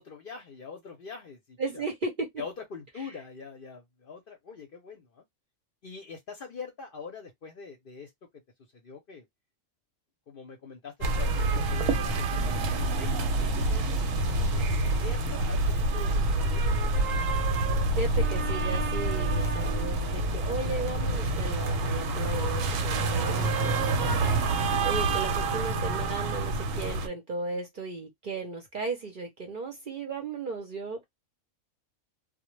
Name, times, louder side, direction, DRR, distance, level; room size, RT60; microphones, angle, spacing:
voice 1, 0.0-1.8 2.4-5.2 5.8-8.1 8.7-9.3 10.3-14.0 14.5-16.8, left 5 dB, 55° left, 0.7 m, -44 dB
voice 2, 1.6-2.4 3.0-3.1 18.0-31.0, right 3 dB, 50° right, 0.7 m, -36 dB
sound 1, 11.0-27.1, right 2 dB, 85° right, 1.0 m, -27 dB
2.1 x 2.1 x 3.0 m
omnidirectional pair, 1.3 m